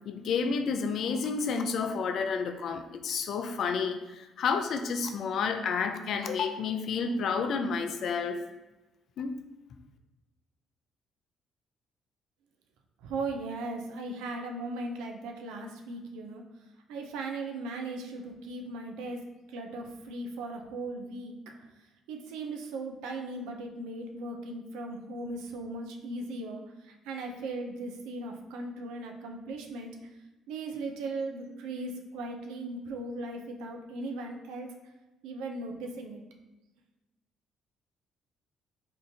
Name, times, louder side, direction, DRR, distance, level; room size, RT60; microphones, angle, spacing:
voice 1, 0.1-8.4 9.2-9.4, left 5 dB, 65° left, 7 dB, 0.3 m, -30 dB
voice 2, 13.0-16.4 16.9-21.4 22.1-30.0 30.5-34.7 35.2-36.2, right 2 dB, 80° right, 3 dB, 0.4 m, -38 dB
3.6 x 2.5 x 2.6 m, 1.1 s
supercardioid pair, 60°, 0 cm